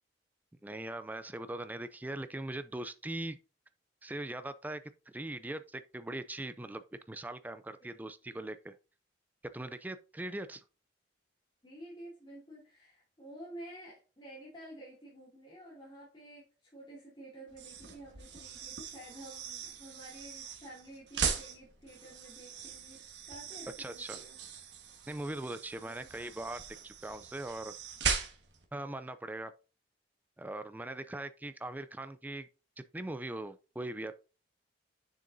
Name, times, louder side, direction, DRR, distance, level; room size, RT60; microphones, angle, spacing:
voice 1, 0.6-3.4 4.0-8.8 9.5-10.6 23.8-24.2 25.1-27.7 28.7-29.5 30.4-32.5 32.8-34.2, right 1 dB, 10° right, 0.3 m, -41 dB
voice 2, 11.6-24.4 25.7-26.1, right 1 dB, 25° left, 2.4 m, -51 dB
sound 1, 17.5-28.7, right 6 dB, 80° right, 1.4 m, -40 dB
6.8 x 6.4 x 2.6 m
head